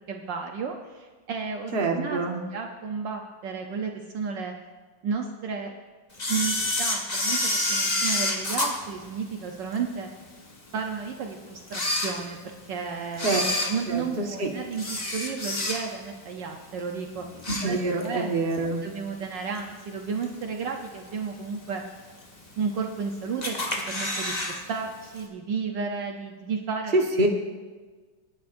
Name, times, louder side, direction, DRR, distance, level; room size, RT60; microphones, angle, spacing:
voice 1, 0.1-2.2 2.5-4.5 5.0-5.7 6.3-10.1 10.7-12.4 12.7-13.4 13.7-17.3 17.6-18.3 18.8-21.8 22.6-27.1, right 5 dB, 65° right, 2 dB, 1.4 m, -33 dB
voice 2, 1.7-2.4 13.2-13.4 13.9-14.5 17.5-18.8 26.9-27.3, right 2 dB, 30° right, 1 dB, 1.4 m, -26 dB
Camera, 6.2-9.8 10.3-10.4 11.1-11.2 11.6-12.6 13.1-16.1 16.5-16.8 17.1-18.2 18.5-18.6 19.6-19.7 20.2-20.6 21.1-21.2 21.3-21.4 21.6-21.7 22.5-23.0 23.4-24.6 24.8-24.9 25.2-25.3, left 1 dB, 20° left, 1.4 m, -28 dB
26.5 x 10.5 x 2.6 m, 1.4 s
omnidirectional pair, 2.2 m